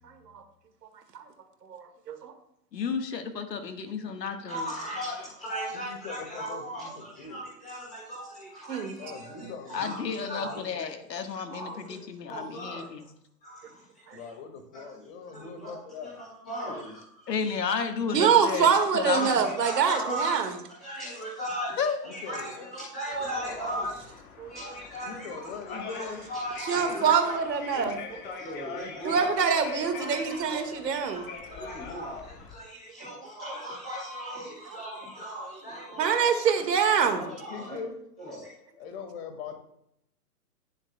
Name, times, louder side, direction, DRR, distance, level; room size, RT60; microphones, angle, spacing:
voice 1, 1.6-2.3 8.7-8.9 14.1-14.2 18.1-20.5 24.4-24.5 26.7-28.0 29.0-31.2 36.0-37.3, right 6 dB, 75° right, 6 dB, 1.9 m, -25 dB
voice 2, 2.7-4.7 9.7-13.1 17.3-19.5 21.8-22.0, left 6 dB, 80° left, 6 dB, 1.6 m, -32 dB
voice 3, 4.5-10.6 11.5-12.9 13.4-14.3 14.7-14.8 15.3-15.8 16.0-17.0 19.1-20.5 20.8-24.1 24.5-27.3 28.4-29.3 29.8-30.4 30.7-36.2 36.9-37.8 38.2-38.5, equal, 5° left, -11 dB, 0.3 m, -38 dB
voice 4, 5.7-7.4 9.0-9.9 10.3-10.6 14.1-16.2 22.0-22.7 25.0-26.2 29.1-29.5 37.0-38.0 38.8-39.5, left 5 dB, 40° left, 5 dB, 1.9 m, -41 dB
sound 1, 23.1-32.5, left 5 dB, 20° left, 1.1 m, -43 dB
18.0 x 7.2 x 2.3 m, 0.76 s
hypercardioid pair, 135°, 49 cm